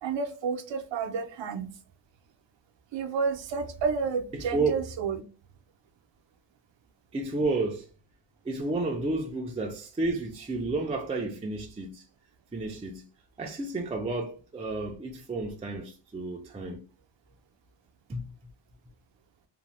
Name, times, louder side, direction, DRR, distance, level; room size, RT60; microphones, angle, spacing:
voice 1, 0.0-1.7 2.9-5.2, right 5 dB, 85° right, 0.6 m, -30 dB
voice 2, 4.3-4.8 7.1-7.9 8.4-12.0 12.5-13.0 13.4-16.8 18.1-18.3, right 2 dB, 15° right, 0.3 m, -31 dB
2.6 x 2.1 x 2.9 m
wide cardioid pair, 150°, 43 cm